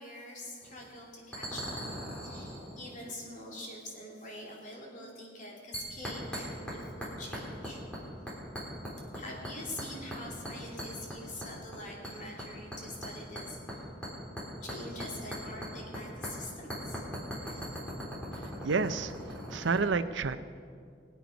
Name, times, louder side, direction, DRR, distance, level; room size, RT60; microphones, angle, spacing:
voice 1, 0.0-7.8 9.1-13.8 14.6-17.0 17.4-17.8, left 1 dB, 45° left, -2 dB, 2.9 m, -45 dB
sound 1, 0.6-0.9 1.3-2.9 5.7-6.8 7.0-8.0 8.3-9.2 9.4-10.2 10.5-11.8 12.0-16.0 16.2-16.3 16.7-19.8, equal, 5° left, 3.5 m, -39 dB
voice 2, 18.3-20.4, right 4 dB, 80° right, 12 dB, 0.6 m, -31 dB
22.0 x 8.5 x 5.2 m, 2.2 s
head